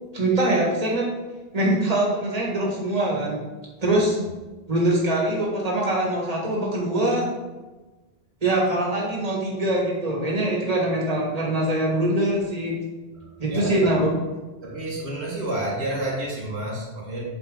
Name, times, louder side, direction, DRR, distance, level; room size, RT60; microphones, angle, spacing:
voice 1, 0.1-1.1 1.5-3.4 3.8-4.2 4.7-7.3 8.4-12.8 13.4-14.1, right 1 dB, 35° right, -3 dB, 2.0 m, -23 dB
voice 2, 13.5-14.0 14.6-17.2, right 1 dB, 90° right, -5 dB, 2.4 m, -30 dB
8.2 x 6.6 x 4.0 m, 1.2 s
omnidirectional pair, 1.1 m